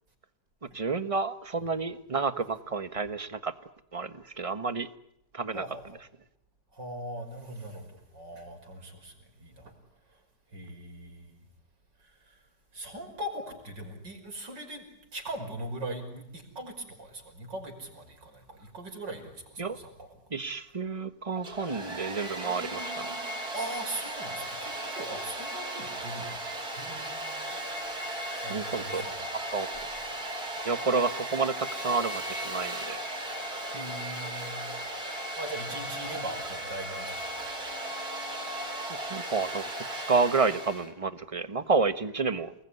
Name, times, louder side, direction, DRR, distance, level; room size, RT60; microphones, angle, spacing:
voice 1, 0.7-3.5 3.9-4.9 5.3-5.6 19.6-19.8 20.3-23.1 28.5-29.0 29.5-29.7 30.6-33.0 38.9-42.5, right 4 dB, 20° right, 12 dB, 1.2 m, -30 dB
voice 2, 5.5-5.9 6.8-9.1 9.4-9.7 10.5-11.4 12.7-14.8 15.1-20.1 22.5-26.4 26.7-27.6 27.9-29.2 33.7-34.7 35.4-37.5, right 1 dB, 75° right, 4 dB, 6.2 m, -40 dB
Domestic sounds home sounds, 21.3-40.9, right 1 dB, 55° right, 5.0 m, -36 dB
29.0 x 20.5 x 9.9 m, 0.77 s
omnidirectional pair, 1.9 m